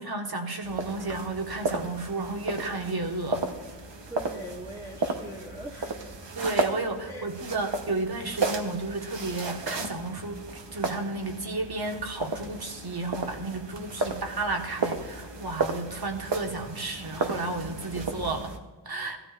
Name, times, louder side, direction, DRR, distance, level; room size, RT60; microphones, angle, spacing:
voice 1, 0.0-3.4 6.3-10.4 10.7-18.5 18.8-19.2, right 2 dB, 55° right, 4 dB, 1.4 m, -32 dB
sound 1, 0.6-18.6, right 3 dB, 70° right, 1.1 m, -34 dB
voice 2, 4.1-6.3 7.1-7.3, right 1 dB, 10° right, -3 dB, 1.0 m, -42 dB
15.0 x 13.0 x 2.5 m, 1.3 s
wide cardioid pair, 55°, 46 cm